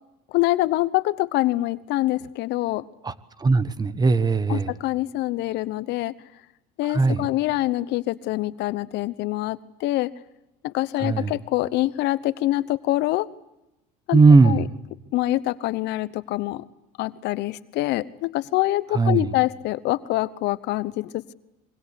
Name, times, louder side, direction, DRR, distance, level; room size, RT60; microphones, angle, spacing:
voice 1, 0.3-2.8 4.5-6.1 6.8-10.1 10.6-13.3 14.1-14.6 15.1-16.6 17.0-21.3, left 17 dB, 65° left, 16 dB, 0.9 m, -25 dB
voice 2, 3.4-4.7 6.8-7.3 11.0-11.3 14.1-14.7 18.9-19.3, right 4 dB, 20° right, 15 dB, 1.2 m, -18 dB
25.5 x 23.0 x 8.3 m, 0.92 s
supercardioid pair, 95°, 19 cm